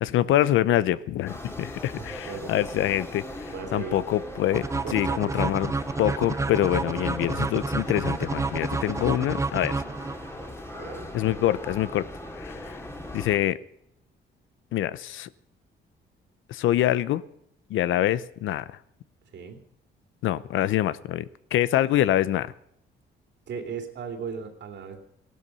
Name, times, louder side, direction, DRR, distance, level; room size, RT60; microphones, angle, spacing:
voice 1, 0.0-5.7 6.0-9.8 11.1-12.1 12.4-12.8 13.1-13.6 14.7-15.3 16.5-17.2 17.7-18.8 20.2-22.5, left 13 dB, 80° left, 17 dB, 0.7 m, -25 dB
sound 1, 1.3-13.4, left 1 dB, 15° left, 2.3 m, -39 dB
voice 2, 2.0-2.6 3.5-4.0 4.8-5.5 10.7-11.1 19.3-19.6 23.5-25.0, right 6 dB, 65° right, 5 dB, 2.7 m, -37 dB
sound 2, 4.5-10.5, right 3 dB, 15° right, 0.6 m, -29 dB
15.5 x 12.5 x 5.5 m, 0.74 s
cardioid pair, 90°, 20 cm